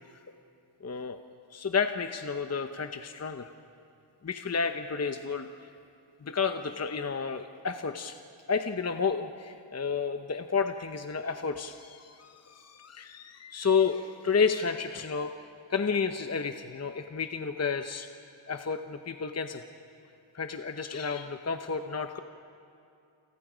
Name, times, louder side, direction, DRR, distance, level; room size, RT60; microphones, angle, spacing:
voice 1, 0.8-1.2 1.5-3.5 4.2-5.5 6.2-8.2 8.5-15.3 15.7-18.1 18.5-19.6 20.3-22.2, left 5 dB, 35° left, 7 dB, 0.8 m, -31 dB
28.5 x 28.0 x 5.1 m, 2.6 s
wide cardioid pair, 95°, 47 cm